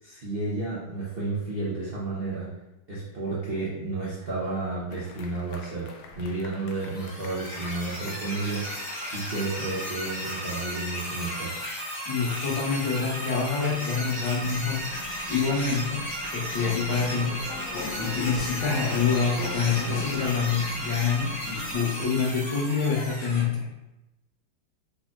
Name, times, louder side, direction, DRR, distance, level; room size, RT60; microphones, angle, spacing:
voice 1, 0.0-2.5 2.9-8.8 9.1-11.6, right 3 dB, 75° right, -7 dB, 0.5 m, -32 dB
sound 1, 4.9-20.4, left 4 dB, 80° left, 0.9 m, -42 dB
sound 2, 6.7-23.4, equal, 20° left, 1.3 m, -35 dB
voice 2, 12.1-16.0 16.3-17.3 17.9-23.7, left 5 dB, 65° left, -4 dB, 1.8 m, -27 dB
sound 3, 14.4-21.7, equal, 45° right, 1.3 m, -46 dB
4.8 x 4.2 x 2.4 m, 0.95 s
omnidirectional pair, 2.4 m